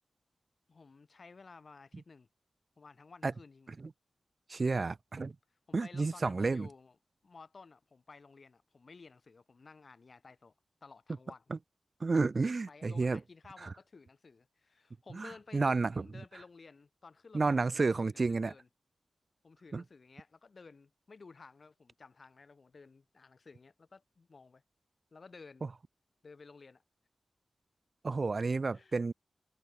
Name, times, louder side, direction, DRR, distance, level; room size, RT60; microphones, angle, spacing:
voice 1, 0.7-2.3 2.8-3.7 5.2-5.3 5.7-7.0 7.2-10.5 10.8-11.4 12.7-18.7 19.4-24.6 25.1-25.7 26.2-26.8 28.7-29.0, left 4 dB, 60° left, 6.9 m, -55 dB
voice 2, 4.5-5.3 5.7-6.7 12.0-13.2 13.6-13.7 15.1-15.9 17.3-18.5 19.7-19.8 28.0-29.1, right 3 dB, 50° right, 0.6 m, -31 dB
cardioid pair, 65°, 0 cm